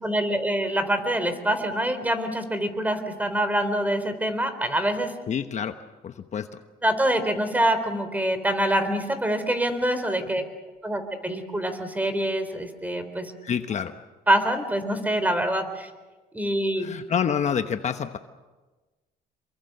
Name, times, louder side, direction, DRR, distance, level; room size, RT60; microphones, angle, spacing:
voice 1, 0.0-5.1 6.8-10.4 10.8-13.3 14.3-15.9 16.3-16.9, right 1 dB, 10° right, 10 dB, 3.7 m, -25 dB
voice 2, 5.3-5.7 6.0-6.5 13.4-13.9 16.8-18.2, left 7 dB, 45° left, 8 dB, 1.1 m, -27 dB
27.5 x 23.0 x 6.8 m, 1.2 s
cardioid pair, 110°, 17 cm